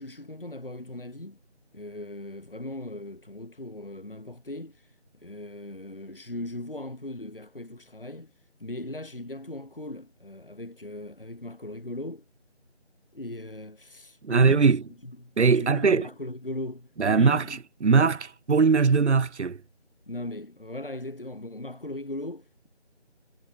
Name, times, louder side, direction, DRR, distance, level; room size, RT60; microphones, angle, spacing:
voice 1, 0.0-1.4 1.7-4.9 5.2-8.3 8.6-12.2 13.1-14.7 15.0-17.6 20.1-22.7, left 1 dB, 50° left, 3.3 m, -38 dB
voice 2, 14.2-14.8 15.4-16.0 17.0-17.4 17.8-19.6, right 5 dB, 80° right, 0.6 m, -20 dB
figure-of-eight pair, 175°, 34 cm